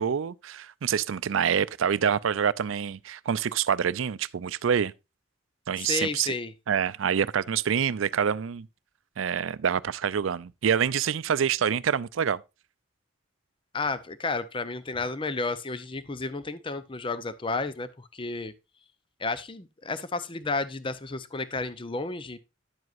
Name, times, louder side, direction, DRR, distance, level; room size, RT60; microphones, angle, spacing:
voice 1, 0.0-4.9 5.7-6.3 6.7-8.7 9.2-12.4, right 7 dB, 80° right, 0.5 m, -26 dB
voice 2, 5.8-6.5 13.7-18.5 19.2-22.4, left 3 dB, 25° left, 0.6 m, -32 dB
10.5 x 7.8 x 2.5 m
head